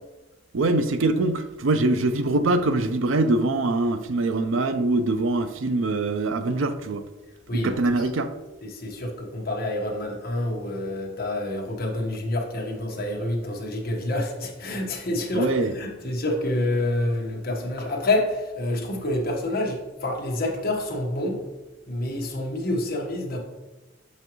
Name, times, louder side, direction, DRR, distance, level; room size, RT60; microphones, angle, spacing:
voice 1, 0.5-7.0 7.5-8.3 15.3-15.7, right 2 dB, 80° right, 0.5 m, -23 dB
voice 2, 7.5-7.8 8.6-21.4 21.9-23.4, left 1 dB, 50° left, 1.3 m, -28 dB
6.9 x 5.5 x 3.1 m
head